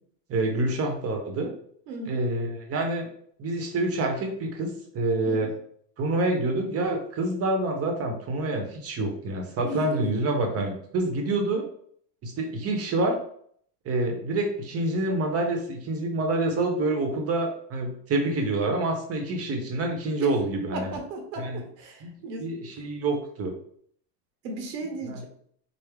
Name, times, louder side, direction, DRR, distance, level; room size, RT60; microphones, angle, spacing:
voice 1, 0.3-1.5 2.0-3.1 3.4-5.5 6.0-11.6 12.2-13.2 13.8-21.0 21.4-21.6 22.0-22.1 22.4-23.5 25.1-25.2, right 2 dB, 30° right, 3 dB, 0.8 m, -27 dB
voice 2, 1.9-2.3 5.2-5.6 9.6-10.3 20.2-20.3 20.7-22.5 24.4-25.2, right 2 dB, 90° right, 3 dB, 1.0 m, -36 dB
3.2 x 2.1 x 3.5 m, 0.62 s
supercardioid pair, 115°, 48 cm